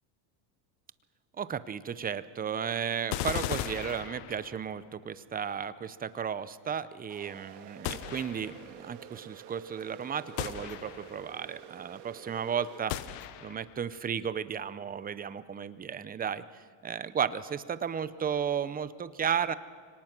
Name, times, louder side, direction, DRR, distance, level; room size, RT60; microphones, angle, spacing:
voice 1, 1.4-13.1 13.4-19.5, right 7 dB, 20° right, 15 dB, 0.6 m, -34 dB
sound 1, 3.1-4.7 7.8-8.7 10.4-11.3 12.9-13.8, left 12 dB, 70° left, 1.2 m, -37 dB
sound 2, 7.1-12.8, right 9 dB, 85° right, 2.0 m, -49 dB
24.5 x 18.5 x 6.0 m, 2.1 s
supercardioid pair, 120°, 50 cm